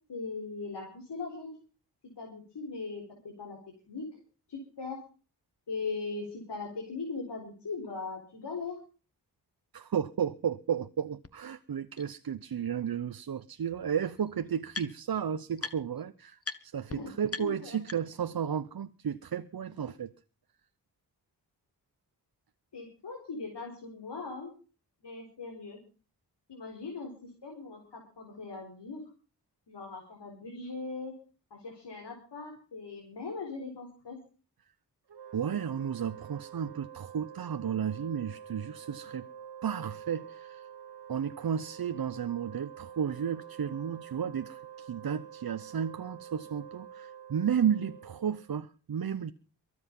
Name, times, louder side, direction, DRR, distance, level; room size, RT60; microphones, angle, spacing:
voice 1, 0.1-1.5 2.2-3.6 3.9-4.2 4.5-5.0 5.7-8.8 16.9-17.1 17.4-17.8 22.7-24.5 25.0-25.8 26.5-29.0 29.7-31.1 31.5-34.2, left 4 dB, 75° left, 4.6 m, -39 dB
voice 2, 9.7-20.1 35.3-39.3 39.6-40.7 41.1-49.3, right 8 dB, 60° right, 0.9 m, -33 dB
sound 1, 11.2-11.3 12.0-12.1 13.4-13.5 13.7-15.2 15.6-16.0 16.4-16.6 16.9-17.0 17.3-18.3, left 4 dB, 35° left, 1.4 m, -41 dB
Wind instrument woodwind instrument, 35.1-48.5, right 8 dB, 75° right, 1.9 m, -48 dB
23.5 x 8.0 x 5.4 m
cardioid pair, 45°, 41 cm